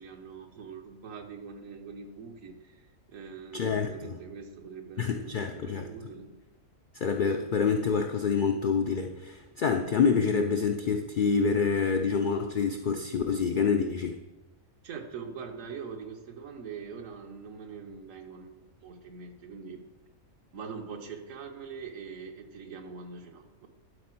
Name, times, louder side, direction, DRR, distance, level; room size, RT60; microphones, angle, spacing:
voice 1, 0.0-2.8 3.1-6.3 14.8-19.8 20.5-23.7, right 5 dB, 75° right, 5 dB, 1.2 m, -43 dB
voice 2, 3.5-4.2 5.0-5.9 6.9-14.2, left 5 dB, 85° left, 5 dB, 0.4 m, -27 dB
11.5 x 4.2 x 4.4 m, 1.1 s
omnidirectional pair, 1.4 m